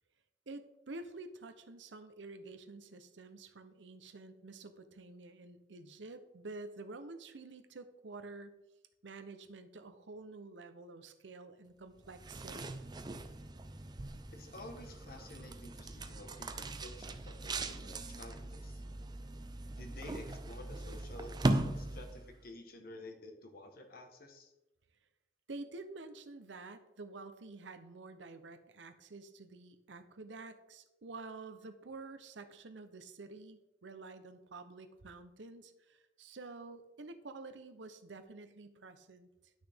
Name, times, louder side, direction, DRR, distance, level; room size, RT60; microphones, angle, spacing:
voice 1, 0.5-8.6 9.0-12.8 25.5-39.5, right 3 dB, 90° right, 9 dB, 0.8 m, -49 dB
sound 1, 12.0-22.4, right 2 dB, 25° right, 0.5 m, -39 dB
voice 2, 14.3-18.8 19.8-24.5, left 1 dB, 55° left, 4 dB, 1.3 m, -51 dB
11.0 x 6.3 x 3.6 m, 0.97 s
head